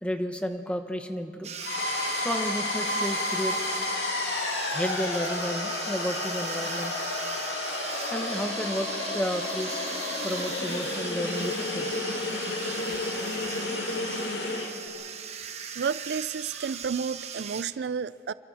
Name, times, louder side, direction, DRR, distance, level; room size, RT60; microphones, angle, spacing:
voice 1, 0.0-1.9 2.2-3.5 4.2-4.3 4.7-7.1 8.1-9.8 10.2-12.0 13.0-13.1 14.4-14.9 16.5-16.7, equal, 5° left, 6 dB, 1.1 m, -32 dB
sound 1, 1.4-17.6, right 7 dB, 35° right, 1.0 m, -39 dB
sound 2, 1.6-14.7, left 2 dB, 80° left, 2.3 m, -31 dB
voice 2, 15.8-18.3, right 6 dB, 65° right, 17 dB, 0.4 m, -31 dB
28.0 x 23.5 x 4.2 m, 2.5 s
head